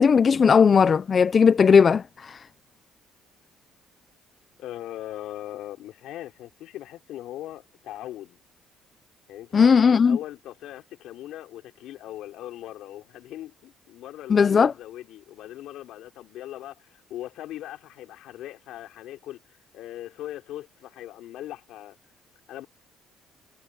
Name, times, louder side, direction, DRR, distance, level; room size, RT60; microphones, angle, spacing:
voice 1, 0.0-2.4 9.5-10.2 14.3-14.7, left 6 dB, 35° left, 0.5 m, -17 dB
voice 2, 4.6-8.4 9.3-22.0 22.5-22.7, left 13 dB, 80° left, 4.2 m, -40 dB
cardioid pair, 110°, 0 cm